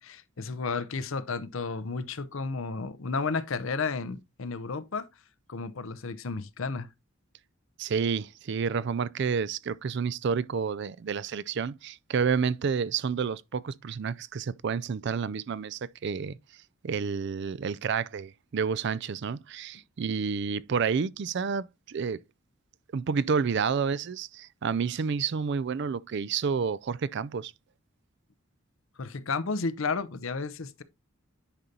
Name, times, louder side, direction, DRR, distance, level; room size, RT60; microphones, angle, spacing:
voice 1, 0.0-5.1 5.5-6.9 29.0-30.8, left 4 dB, 70° left, 0.7 m, -32 dB
voice 2, 7.8-16.4 16.8-22.2 22.9-27.5, right 6 dB, 55° right, 0.4 m, -30 dB
9.9 x 5.2 x 2.8 m
head